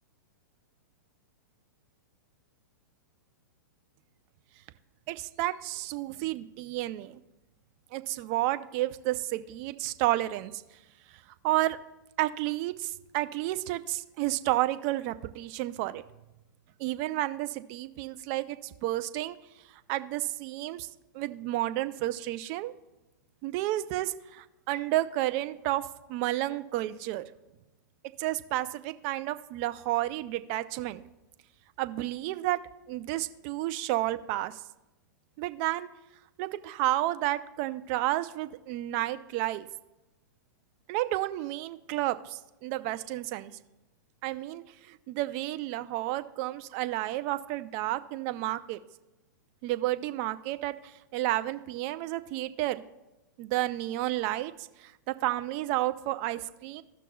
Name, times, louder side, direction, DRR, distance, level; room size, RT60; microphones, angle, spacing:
voice 1, 5.1-7.2 7.9-10.6 11.1-11.8 12.2-16.0 16.8-19.4 19.7-20.9 21.1-22.7 23.4-27.2 28.2-31.0 31.8-32.6 32.9-34.6 35.4-35.9 36.4-39.7 40.9-43.5 44.2-48.8 49.6-52.8 53.4-56.8, right 16 dB, 40° right, 12 dB, 0.5 m, -31 dB
16.0 x 6.0 x 2.3 m, 0.98 s
hypercardioid pair, 125°, 11 cm